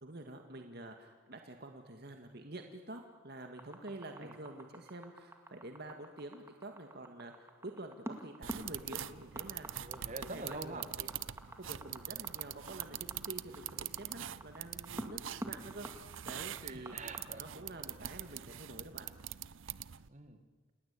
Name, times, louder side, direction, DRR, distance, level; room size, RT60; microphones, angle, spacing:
voice 1, 0.0-9.9 10.2-11.1 11.6-17.0 17.4-19.1, right 2 dB, 55° right, 4 dB, 2.1 m, -48 dB
sound 1, 3.6-17.2, right 1 dB, 15° right, 2.3 m, -46 dB
sound 2, 8.4-20.1, right 12 dB, 80° right, 0.7 m, -44 dB
voice 2, 9.8-10.9 16.6-17.6 20.1-20.4, right 2 dB, 35° right, 8 dB, 2.1 m, -45 dB
28.5 x 19.5 x 8.5 m, 1.4 s
head